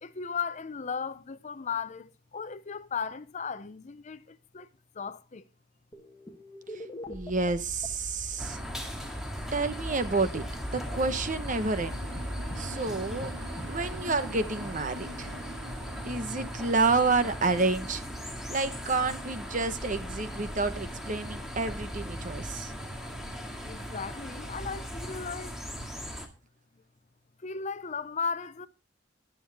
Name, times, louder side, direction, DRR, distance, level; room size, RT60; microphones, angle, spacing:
voice 1, 0.0-4.7 4.9-5.4 23.6-25.6 27.4-28.7, left 5 dB, 40° left, 0.6 m, -36 dB
sound 1, 5.9-15.3, left 1 dB, 20° left, 1.4 m, -43 dB
voice 2, 7.1-8.6 9.5-10.4 10.7-12.0 12.6-13.3 13.7-15.3 16.1-18.0 18.5-22.7, right 3 dB, 45° right, 1.0 m, -29 dB
sound 2, 8.4-26.3, equal, 5° right, 2.0 m, -38 dB
sound 3, 10.4-18.4, right 2 dB, 85° right, 1.2 m, -48 dB
21.5 x 7.2 x 3.4 m
head